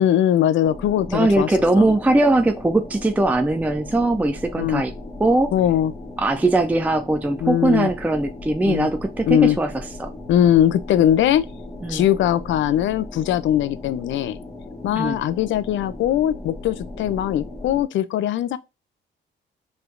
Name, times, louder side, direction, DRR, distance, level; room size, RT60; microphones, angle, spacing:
voice 1, 0.0-1.5 1.8-1.9 4.6-4.8 5.5-5.9 7.4-7.9 8.7-8.9 9.2-9.6 10.3-11.4 11.9-14.4 14.8-18.6, left 11 dB, 70° left, 0.5 m, -20 dB
sound 1, 0.6-17.8, left 2 dB, 15° left, 1.0 m, -37 dB
voice 2, 1.1-4.9 5.2-5.5 6.2-10.1 11.8-12.0 14.9-15.2 17.3-17.4, right 2 dB, 10° right, 0.4 m, -20 dB
4.7 x 3.3 x 2.4 m
cardioid pair, 90°, 20 cm